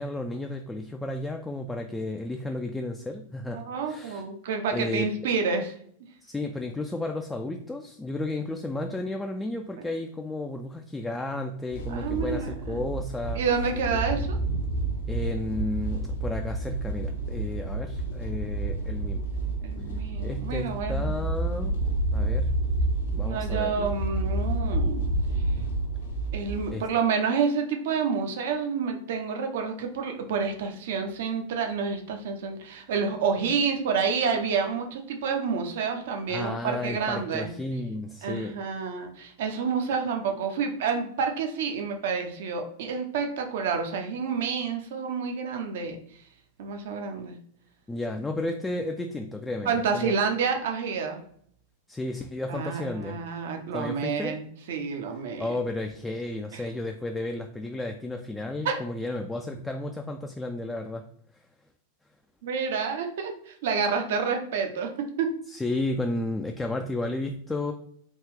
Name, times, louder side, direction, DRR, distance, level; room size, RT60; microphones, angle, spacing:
voice 1, 0.0-4.2 4.7-5.1 6.2-13.4 15.1-19.2 20.2-21.8 22.1-22.5 23.1-24.0 26.7-26.9 36.3-38.6 47.9-50.1 51.9-53.2 53.7-54.4 55.4-61.0 65.5-67.7, left 2 dB, 10° left, 4 dB, 0.3 m, -33 dB
voice 2, 3.5-5.7 11.9-12.8 13.3-14.4 19.6-21.2 23.3-25.1 26.3-37.5 38.2-46.0 46.6-47.3 49.6-51.2 52.5-55.5 56.5-56.6 58.6-58.7 62.4-65.3, right 5 dB, 55° right, 4 dB, 0.6 m, -29 dB
sound 1, 11.7-26.7, right 2 dB, 65° left, 0.7 m, -29 dB
3.5 x 2.4 x 3.2 m, 0.62 s
figure-of-eight pair, 90°, 0 cm